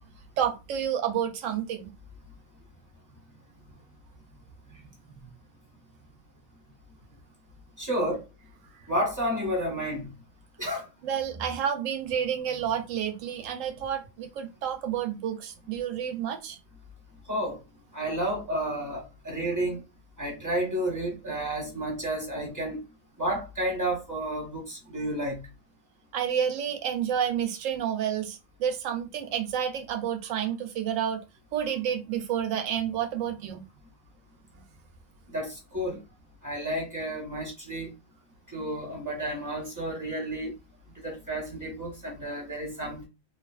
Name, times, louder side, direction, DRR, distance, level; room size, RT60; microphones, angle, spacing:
voice 1, 0.4-1.9 5.2-5.3 11.0-16.6 26.1-31.2 31.5-33.6, right 9 dB, 80° right, 1.0 m, -30 dB
voice 2, 7.8-8.2 8.9-10.1 10.6-10.8 17.3-17.6 17.9-19.8 20.2-22.8 23.2-25.5 35.3-36.0 36.4-37.9 38.5-40.5 41.0-43.1, right 1 dB, 15° right, 0.9 m, -31 dB
2.9 x 2.4 x 2.3 m
omnidirectional pair, 1.4 m